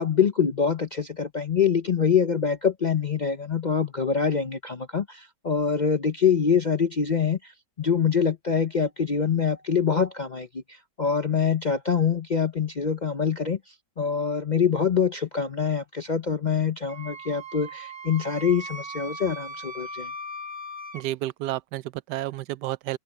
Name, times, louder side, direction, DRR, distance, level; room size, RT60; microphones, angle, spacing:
voice 1, 0.0-7.5 7.8-13.6 14.0-20.1, left 6 dB, 45° left, 0.6 m, -25 dB
Wind instrument woodwind instrument, 16.9-21.0, right 1 dB, 15° right, 1.7 m, -38 dB
voice 2, 20.9-23.0, right 15 dB, 85° right, 1.2 m, -31 dB
open air
omnidirectional pair, 1.8 m